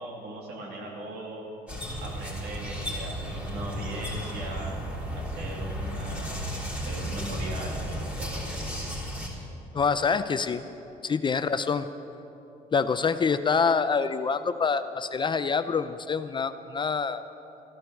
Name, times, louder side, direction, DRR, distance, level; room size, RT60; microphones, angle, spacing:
voice 1, 0.0-1.5 2.0-4.7 5.1-8.6, right 2 dB, 75° right, -1 dB, 2.9 m, -39 dB
sound 1, 1.7-9.3, equal, 10° right, 3.3 m, -34 dB
voice 2, 9.7-10.7 11.0-11.9 12.7-17.2, left 5 dB, 30° left, 11 dB, 0.5 m, -26 dB
14.5 x 10.5 x 7.1 m, 2.9 s
cardioid pair, 110°, 17 cm